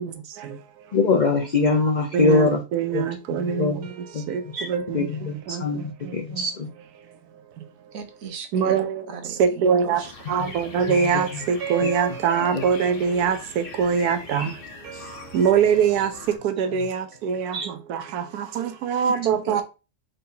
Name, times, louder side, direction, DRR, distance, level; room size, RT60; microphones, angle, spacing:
voice 1, 0.0-1.0 2.1-6.5 7.0-7.9 8.5-10.0 10.3-19.6, right 7 dB, 85° right, 1.2 m, -24 dB
voice 2, 0.9-2.6 2.9-3.0 3.3-3.8 4.1-4.2 4.5-4.7 4.9-6.7 10.4-10.5 10.9-11.4 12.5-12.6 17.5-17.7, left 3 dB, 85° left, 0.4 m, -23 dB
voice 3, 7.8-10.4 19.0-19.6, right 5 dB, 65° right, 1.2 m, -38 dB
sound 1, 9.9-16.4, left 3 dB, 45° left, 1.0 m, -40 dB
4.2 x 3.8 x 2.7 m
omnidirectional pair, 1.6 m